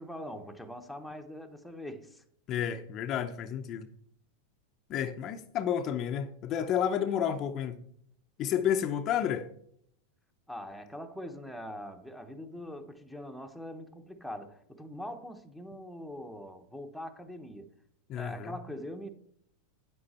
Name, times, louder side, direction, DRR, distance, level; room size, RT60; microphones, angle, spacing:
voice 1, 0.0-2.2 10.5-17.7 18.1-19.1, left 1 dB, ahead, 1.0 m, -42 dB
voice 2, 2.5-3.9 4.9-7.8 8.4-9.5 18.1-18.6, left 9 dB, 40° left, 0.7 m, -31 dB
9.5 x 7.7 x 4.3 m
hypercardioid pair, 120°, 0 cm